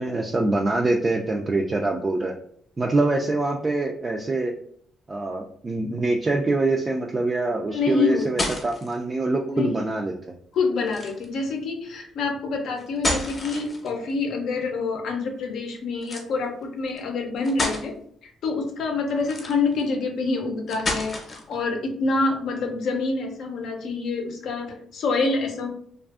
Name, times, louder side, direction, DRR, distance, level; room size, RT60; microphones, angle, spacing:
voice 1, 0.0-2.3 2.8-4.5 5.1-10.1, right 2 dB, 30° right, 0 dB, 0.3 m, -24 dB
voice 2, 7.7-8.5 9.5-9.8 10.5-17.9 18.2-25.7, left 3 dB, 70° left, 3 dB, 0.5 m, -26 dB
sound 1, 7.9-8.9 10.9-11.3 12.8-14.1 16.0-16.3 17.0-17.1 17.4-17.9 19.2-19.8 20.7-21.5, left 1 dB, 35° left, 0.7 m, -29 dB
2.5 x 2.4 x 2.4 m, 0.62 s
cardioid pair, 90°, 0 cm